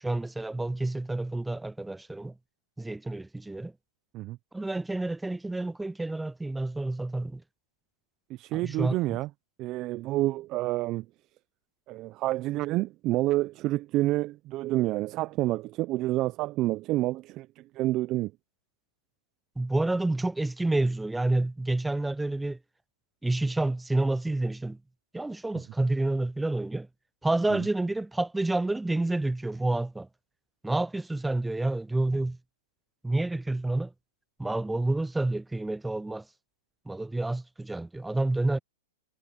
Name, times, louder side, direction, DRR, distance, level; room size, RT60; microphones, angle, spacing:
voice 1, 0.0-2.3 2.8-3.7 4.5-7.4 8.5-9.2 19.6-22.6 23.2-24.8 25.1-26.9 27.2-30.1 30.6-32.4 33.0-33.9 34.4-36.2 36.9-38.6, right 2 dB, 5° right, 0.3 m, -29 dB
voice 2, 8.3-9.3 9.6-11.1 11.9-18.3 27.5-27.7, right 17 dB, 35° right, 0.7 m, -28 dB
hypercardioid pair, 125°, 0 cm